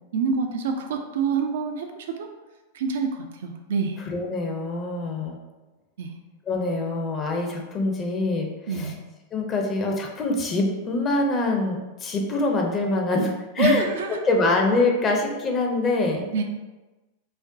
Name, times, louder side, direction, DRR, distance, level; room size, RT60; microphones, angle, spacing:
voice 1, 0.1-2.3 2.7-4.0 6.0-6.1 8.7-9.0 13.6-14.2 16.3-16.4, right 5 dB, 60° right, 4 dB, 0.4 m, -26 dB
voice 2, 4.1-5.4 6.5-8.9 9.3-13.9 14.2-16.2, left 2 dB, 25° left, 1 dB, 0.6 m, -24 dB
5.5 x 2.1 x 2.6 m, 1.2 s
figure-of-eight pair, 90°, 0 cm